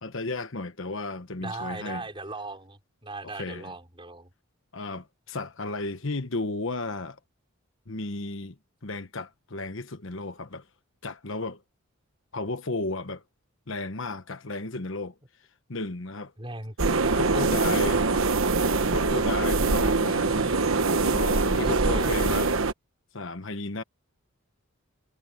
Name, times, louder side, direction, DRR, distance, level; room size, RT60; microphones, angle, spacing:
voice 1, 0.0-2.0 3.3-3.6 4.7-7.2 7.9-8.5 8.8-10.6 11.0-11.6 12.3-13.2 13.7-15.1 15.7-16.3 17.1-18.0 18.9-20.5 21.1-22.5 23.1-23.8, left 3 dB, 60° left, 1.2 m, -33 dB
voice 2, 1.4-4.3 16.4-16.7 17.3-18.0 20.2-20.7 21.6-22.4, right 2 dB, 25° right, 4.8 m, -39 dB
sound 1, 16.8-22.7, right 3 dB, 70° right, 1.2 m, -23 dB
head